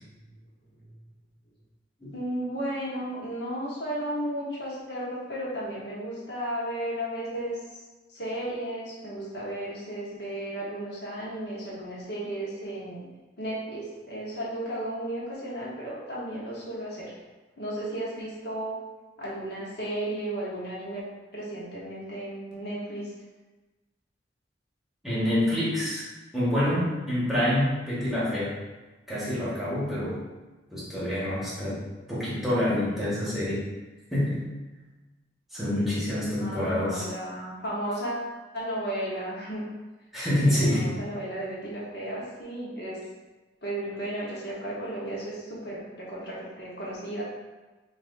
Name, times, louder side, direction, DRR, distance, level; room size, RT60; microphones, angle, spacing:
voice 1, 2.1-7.8 8.1-13.1 13.4-17.1 17.6-18.8 19.2-21.0 21.3-23.1 36.4-39.6 40.4-43.0 43.6-47.2, right 1 dB, 60° left, -6 dB, 1.1 m, -34 dB
voice 2, 25.0-26.0 26.3-28.6 29.1-30.2 30.7-33.6 34.1-34.4 35.5-37.0 40.1-40.9, left 1 dB, ahead, -10 dB, 1.3 m, -27 dB
5.9 x 2.6 x 2.6 m, 1.2 s
head